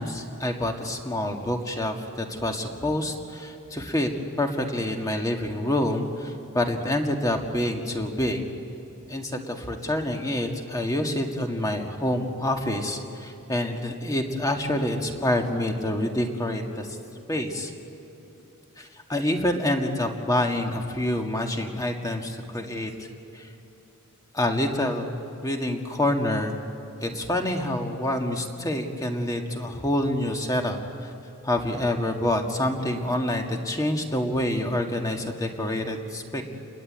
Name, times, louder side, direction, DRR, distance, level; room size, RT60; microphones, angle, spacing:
voice 1, 0.0-4.1 4.4-8.4 9.1-17.0 17.3-17.7 18.8-22.9 23.3-23.5 24.3-26.6 27.0-31.1 31.4-36.4, left 1 dB, 15° left, 3 dB, 1.9 m, -27 dB
29.5 x 21.0 x 8.8 m, 2.8 s
head